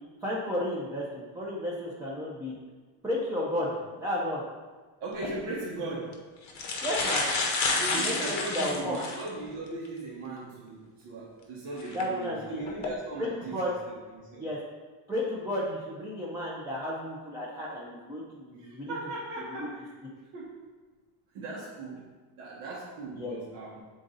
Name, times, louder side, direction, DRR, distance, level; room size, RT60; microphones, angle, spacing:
voice 1, 0.2-2.5 3.0-4.4 6.8-7.2 7.9-9.0 11.9-12.6 13.2-13.7 14.4-14.6 15.1-19.0 19.6-19.7 23.1-23.4, left 1 dB, 5° right, -6 dB, 0.6 m, -33 dB
voice 2, 5.0-6.2 7.7-14.4 18.6-19.9 20.3-20.6 21.3-22.1 22.4-23.8, right 3 dB, 75° right, -7 dB, 1.6 m, -38 dB
sound 1, 5.1-5.3 6.1-6.2 6.5-9.3 9.8-9.9 11.8-12.0 12.6-12.9, left 3 dB, 35° left, 0.8 m, -29 dB
7.5 x 3.8 x 4.0 m, 1.4 s
cardioid pair, 170°, 48 cm